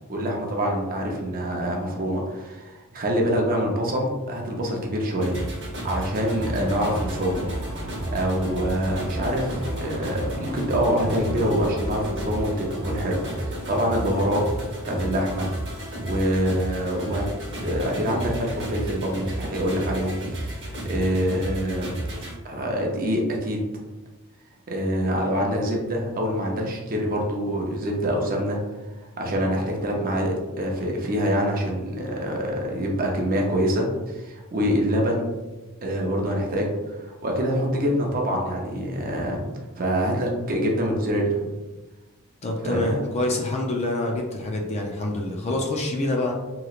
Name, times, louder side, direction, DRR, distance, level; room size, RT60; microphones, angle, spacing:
voice 1, 0.1-5.4 5.8-7.4 8.1-14.4 14.9-15.5 16.0-17.2 17.6-22.0 22.4-23.6 24.7-28.6 29.2-35.3 35.8-39.4 39.8-41.5 42.6-43.0, equal, 40° right, 0 dB, 0.6 m, -25 dB
sound 1, 5.2-22.3, right 1 dB, 60° right, 1.0 m, -32 dB
sound 2, 6.4-12.6, equal, 85° left, 1.2 m, -37 dB
voice 2, 42.4-46.3, left 2 dB, 30° left, 1 dB, 0.4 m, -26 dB
3.1 x 3.0 x 2.4 m, 1.2 s
head